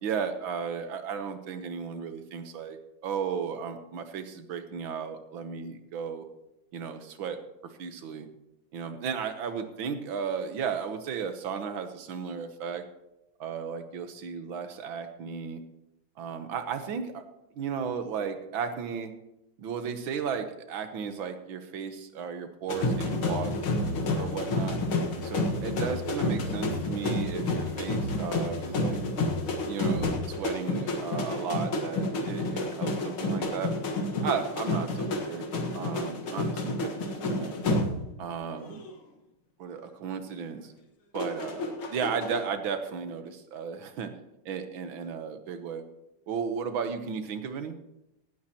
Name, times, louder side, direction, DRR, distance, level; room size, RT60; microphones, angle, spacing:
voice 1, 0.0-6.3 6.7-8.3 8.7-12.8 13.4-15.6 16.2-17.2 17.6-19.1 19.6-23.6 24.2-24.8 25.2-29.0 29.7-33.7 34.2-35.4 35.7-37.6 38.2-38.8 39.6-40.7 41.1-44.1 44.5-45.8 46.3-47.8, right 6 dB, 70° right, 8 dB, 1.8 m, -34 dB
sound 1, 22.7-38.3 38.6-38.9 41.2-42.5, left 2 dB, 70° left, 2.4 m, -30 dB
17.5 x 12.5 x 3.0 m, 0.92 s
omnidirectional pair, 2.4 m